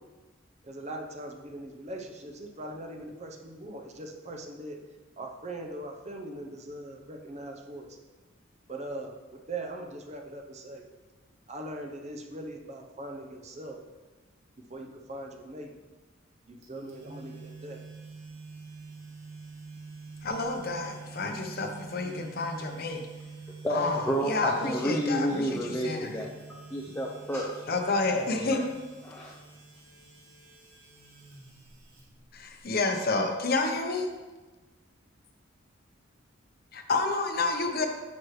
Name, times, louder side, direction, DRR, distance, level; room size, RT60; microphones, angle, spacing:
voice 1, 0.6-4.8 5.2-8.0 8.7-10.9 11.5-13.8 14.7-15.7 16.5-17.8, right 1 dB, 35° right, 2 dB, 0.7 m, -40 dB
sound 1, 16.6-32.6, right 4 dB, 75° right, 2.2 m, -47 dB
voice 2, 20.2-23.0 23.7-26.1 27.7-28.6 32.3-34.1 36.7-37.9, left 3 dB, 50° left, 4 dB, 0.8 m, -29 dB
voice 3, 23.6-27.7 28.3-28.6 29.0-29.4 37.7-37.9, equal, 10° left, -2 dB, 0.5 m, -31 dB
9.6 x 6.1 x 3.2 m, 1.3 s
head